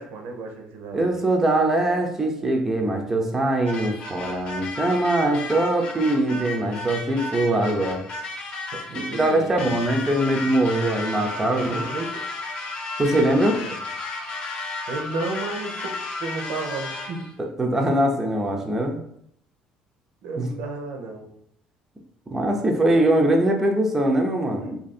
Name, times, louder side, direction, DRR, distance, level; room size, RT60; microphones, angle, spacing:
voice 1, 0.0-1.1 8.7-10.1 11.4-12.2 13.1-13.8 14.9-17.3 20.2-21.3 24.6-24.8, right 3 dB, 80° right, 3 dB, 0.7 m, -33 dB
voice 2, 0.9-8.0 8.9-11.8 13.0-13.5 17.6-19.0 20.4-20.5 22.3-24.7, right 1 dB, 15° right, 2 dB, 0.4 m, -22 dB
sound 1, 3.7-17.3, left 3 dB, 45° left, 0.7 m, -33 dB
2.7 x 2.6 x 4.1 m, 0.70 s
cardioid pair, 145°, 3 cm